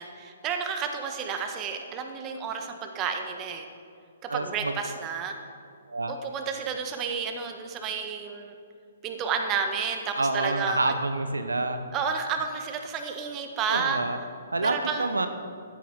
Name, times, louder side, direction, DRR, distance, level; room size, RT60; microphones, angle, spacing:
voice 1, 0.0-3.7 4.2-5.3 6.1-8.5 9.0-11.0 11.9-14.0 14.6-15.1, right 6 dB, 25° right, 5 dB, 1.4 m, -31 dB
voice 2, 4.3-4.7 5.9-6.1 10.2-11.8 13.7-14.2 14.5-15.3, right 2 dB, 90° right, 8 dB, 0.9 m, -28 dB
13.5 x 8.7 x 5.3 m, 2.4 s
hypercardioid pair, 130°, 0 cm